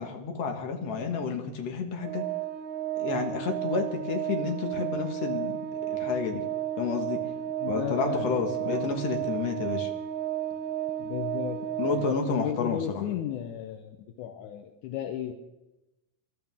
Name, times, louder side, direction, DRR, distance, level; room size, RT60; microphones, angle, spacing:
voice 1, 0.0-2.2 3.0-5.6 5.9-6.4 6.8-7.2 7.7-9.9 11.8-13.0, left 5 dB, 55° left, 3 dB, 2.5 m, -30 dB
Organ, 2.0-12.7, right 11 dB, 80° right, 2.1 m, -33 dB
voice 2, 7.6-8.3 8.6-8.9 11.0-11.6 11.9-15.3, left 10 dB, 75° left, 4 dB, 2.3 m, -34 dB
24.5 x 12.0 x 3.6 m, 0.99 s
omnidirectional pair, 3.7 m